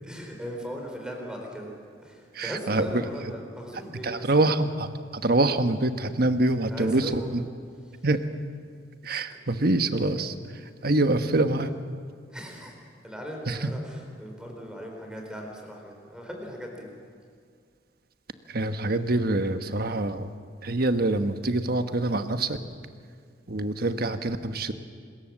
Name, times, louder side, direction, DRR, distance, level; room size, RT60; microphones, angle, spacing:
voice 1, 0.0-1.7 2.0-4.5 6.7-7.4 7.8-8.0 9.3-9.4 12.3-12.8 13.0-16.9, equal, 5° right, 1 dB, 4.1 m, -39 dB
voice 2, 2.3-2.9 4.0-7.4 8.0-8.2 9.0-10.3 10.8-11.7 13.5-13.7 18.5-20.3 20.6-22.6 23.5-24.7, right 2 dB, 60° right, 9 dB, 1.3 m, -25 dB
26.0 x 21.0 x 7.5 m, 2.1 s
head